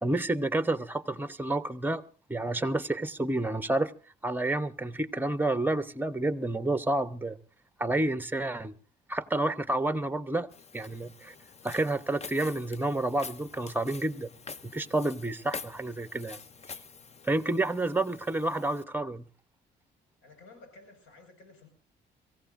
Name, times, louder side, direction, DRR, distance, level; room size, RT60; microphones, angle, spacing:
voice 1, 0.0-2.0 2.3-3.9 4.2-7.4 7.8-8.8 9.1-10.5 10.7-11.3 11.6-14.3 14.6-16.4 17.2-19.3, right 2 dB, 10° right, 0.9 m, -29 dB
Walk footsteps, 10.5-18.8, left 5 dB, 35° left, 0.7 m, -46 dB
voice 2, 20.2-21.7, left 3 dB, 85° left, 5.9 m, -53 dB
25.0 x 15.5 x 2.6 m
cardioid pair, 90°, 20 cm